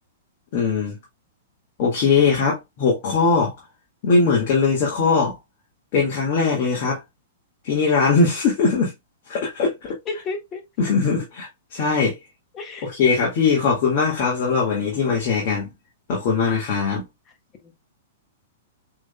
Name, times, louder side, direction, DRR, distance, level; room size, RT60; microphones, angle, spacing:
voice 1, 0.5-1.0 1.8-3.5 4.0-5.4 5.9-7.0 7.6-8.9 9.3-9.7 10.8-12.1 12.8-15.7 16.1-17.0, left 4 dB, 50° left, 2.0 m, -20 dB
voice 2, 10.1-10.6 12.6-12.9, left 3 dB, 30° left, 1.6 m, -31 dB
6.1 x 3.7 x 2.3 m
hypercardioid pair, 120°, 0 cm